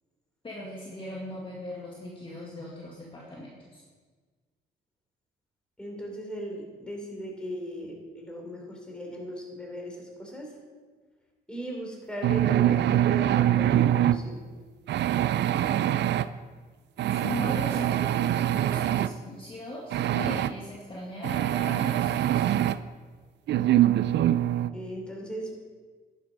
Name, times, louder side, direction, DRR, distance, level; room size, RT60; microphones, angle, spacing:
voice 1, 0.4-3.8 17.1-22.5, left 1 dB, 25° left, -4 dB, 1.8 m, -39 dB
voice 2, 5.8-10.6 11.5-14.4 24.7-25.7, equal, 5° left, -1 dB, 3.2 m, -38 dB
sound 1, 12.2-14.2 14.9-16.3 17.0-19.1 19.9-20.5 21.2-22.8 23.5-24.7, right 12 dB, 60° right, 0.4 m, -24 dB
11.0 x 7.0 x 5.2 m, 1.4 s
cardioid pair, 90°, 20 cm